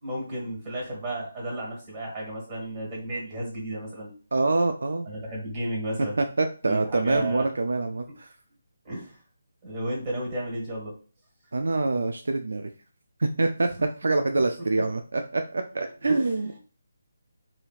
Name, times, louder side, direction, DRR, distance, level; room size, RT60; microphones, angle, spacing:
voice 1, 0.0-4.1 5.1-6.2 6.6-7.5 8.8-9.2 9.6-10.9 16.0-16.4, right 1 dB, 25° right, -3 dB, 1.5 m, -33 dB
voice 2, 4.3-5.1 6.0-8.3 11.5-12.7 13.2-16.6, right 3 dB, 70° right, 6 dB, 0.3 m, -25 dB
2.9 x 2.7 x 2.3 m, 0.38 s
figure-of-eight pair, 155°, 0 cm